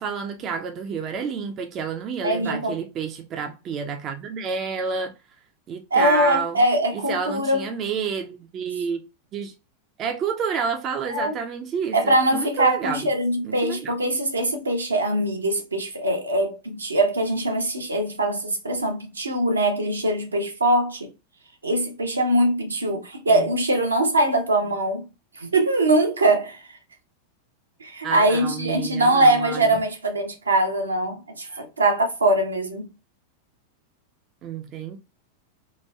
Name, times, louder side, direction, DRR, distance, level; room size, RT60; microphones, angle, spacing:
voice 1, 0.0-5.1 5.7-6.6 6.9-9.0 9.3-9.5 10.0-13.1 13.4-13.9 23.3-23.5 28.0-29.7 34.4-35.0, right 6 dB, 30° right, 0.3 m, -29 dB
voice 2, 2.2-2.8 5.9-7.7 11.1-11.4 11.9-21.1 21.6-25.1 25.4-26.6 27.8-32.9, right 1 dB, 75° right, 0.6 m, -22 dB
3.0 x 2.2 x 2.2 m
figure-of-eight pair, 90°, 0 cm